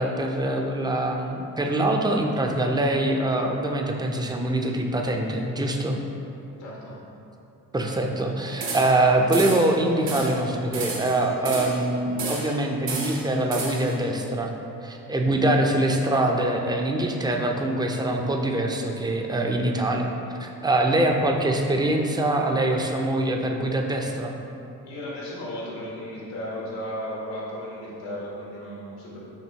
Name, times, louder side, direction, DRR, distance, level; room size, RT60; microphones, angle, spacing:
voice 1, 0.0-6.0 7.7-14.5 14.8-20.1 20.4-24.4, right 1 dB, 10° right, 2 dB, 0.5 m, -24 dB
voice 2, 6.6-7.0 24.8-29.2, equal, 80° left, -5 dB, 1.4 m, -35 dB
sound 1, 8.6-9.0 9.3-9.7 10.1-10.4 10.7-11.8 12.2-12.6 12.9-14.0, right 3 dB, 80° right, 0.9 m, -32 dB
5.9 x 3.0 x 2.8 m, 2.7 s
supercardioid pair, 50°, 42 cm